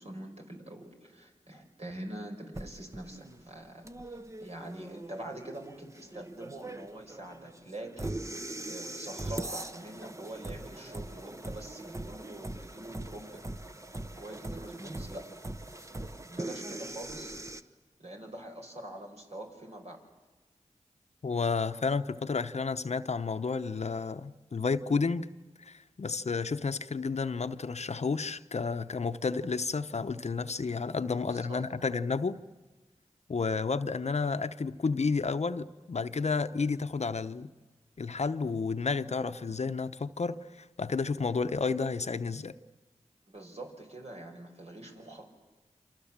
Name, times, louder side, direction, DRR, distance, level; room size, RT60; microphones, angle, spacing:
voice 1, 0.0-8.2 8.7-13.4 14.2-15.3 16.2-17.4 18.0-20.0 31.0-31.6 43.3-45.3, right 1 dB, 60° right, 5.4 m, -44 dB
sound 1, 2.5-17.6, right 1 dB, 25° right, 1.2 m, -41 dB
voice 2, 21.2-25.3 25.6-32.4 33.3-37.5 38.0-42.5, left 4 dB, 65° left, 0.9 m, -31 dB
28.0 x 26.0 x 7.4 m
cardioid pair, 50°, 12 cm